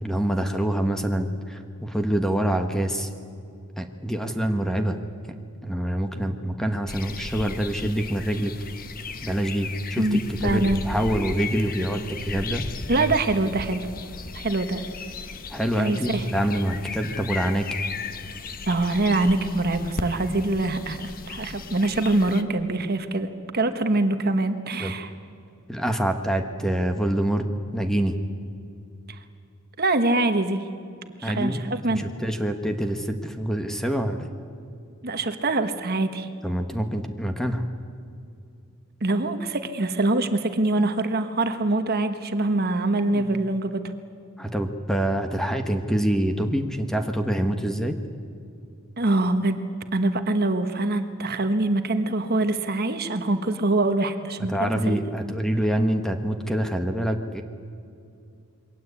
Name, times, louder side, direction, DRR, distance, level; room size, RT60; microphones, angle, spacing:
voice 1, 0.0-3.1 3.8-5.0 5.2-5.3 5.6-8.5 9.2-12.7 12.9-13.1 15.5-17.7 24.8-25.0 25.7-27.5 27.7-28.2 31.2-34.3 36.4-37.7 43.1-43.3 44.4-48.0 54.5-57.4, right 1 dB, ahead, 6 dB, 1.4 m, -26 dB
sound 1, 6.9-22.4, left 4 dB, 45° left, 1.2 m, -36 dB
voice 2, 10.0-10.8 12.9-13.9 14.3-14.8 15.8-16.2 18.7-23.3 23.5-25.1 29.1-29.2 29.8-30.6 31.2-32.0 35.0-36.3 39.0-43.8 49.0-49.6 49.9-55.0, right 2 dB, 45° right, 8 dB, 1.3 m, -24 dB
27.5 x 22.5 x 8.4 m, 2.5 s
head